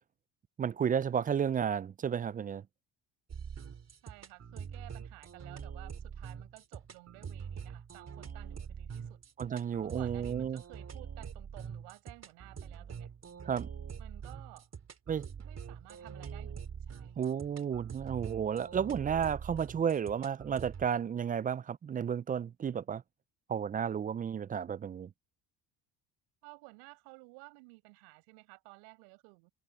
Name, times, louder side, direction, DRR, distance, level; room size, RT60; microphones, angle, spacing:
voice 1, 0.6-2.6 9.4-10.6 13.5-13.7 15.1-15.3 17.2-23.0 23.5-25.1, right 8 dB, 20° right, 0.4 m, -32 dB
sound 1, 3.3-20.9, right 7 dB, 35° right, 3.4 m, -44 dB
voice 2, 4.0-9.2 9.8-13.1 14.0-14.7 15.4-17.2 26.4-29.5, right 34 dB, 85° right, 6.0 m, -54 dB
supercardioid pair, 85°, 42 cm